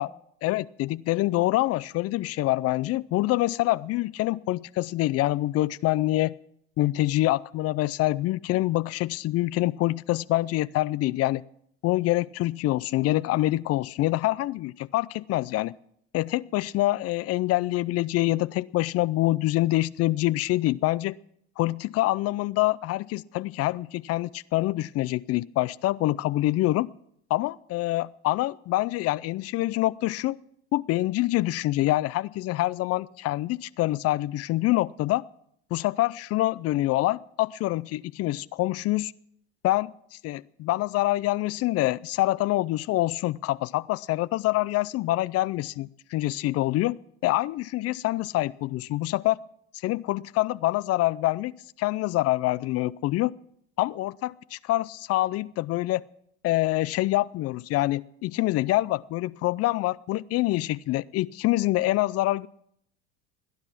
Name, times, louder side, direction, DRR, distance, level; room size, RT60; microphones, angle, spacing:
voice 1, 0.4-6.3 6.8-11.4 11.8-15.7 16.1-21.1 21.6-26.9 27.3-30.4 30.7-35.2 35.7-39.1 39.6-47.0 47.2-49.4 49.8-53.3 53.8-56.0 56.4-62.5, left 17 dB, 50° left, 22 dB, 0.5 m, -26 dB
18.0 x 10.5 x 5.9 m, 0.70 s
supercardioid pair, 95°, 32 cm